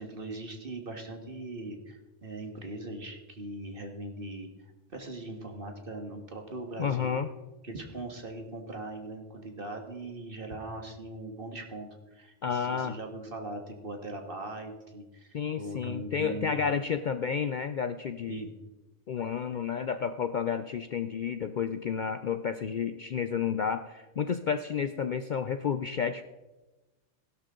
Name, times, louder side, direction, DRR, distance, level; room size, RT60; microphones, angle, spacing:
voice 1, 0.0-4.5 4.9-7.2 7.6-16.7 18.3-18.5, right 2 dB, 50° right, 3 dB, 1.9 m, -40 dB
voice 2, 6.8-7.3 12.4-12.9 15.3-18.5 19.1-26.2, left 7 dB, 55° left, 10 dB, 0.5 m, -31 dB
16.5 x 12.0 x 3.8 m, 1.1 s
omnidirectional pair, 1.2 m